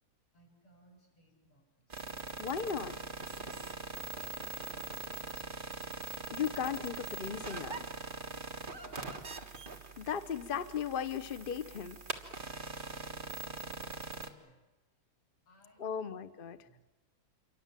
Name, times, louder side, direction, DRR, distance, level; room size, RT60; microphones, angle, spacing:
voice 1, 0.3-2.1 3.9-5.4 8.3-9.4 12.8-14.6 15.5-16.2 16.5-16.8, equal, 80° left, -1 dB, 8.4 m, -63 dB
sound 1, 1.9-14.3, right 3 dB, 25° right, 1.6 m, -42 dB
voice 2, 2.4-3.0 6.3-7.9 10.0-12.0 15.8-16.6, left 7 dB, 55° left, 12 dB, 0.5 m, -36 dB
28.0 x 24.0 x 7.6 m, 1.1 s
omnidirectional pair, 2.4 m